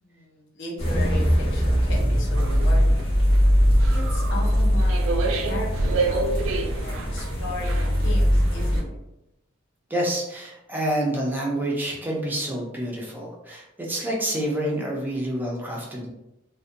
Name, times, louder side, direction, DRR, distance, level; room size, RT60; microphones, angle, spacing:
voice 1, 0.0-3.1 3.9-9.0, left 1 dB, 65° left, -1 dB, 0.6 m, -36 dB
sound 1, 0.8-8.8, equal, 30° left, 0.8 m, -21 dB
sound 2, 2.3-8.8, right 2 dB, 70° right, 0.3 m, -29 dB
voice 2, 9.9-16.1, right 1 dB, 10° right, -2 dB, 0.5 m, -28 dB
2.5 x 2.1 x 2.5 m, 0.89 s
head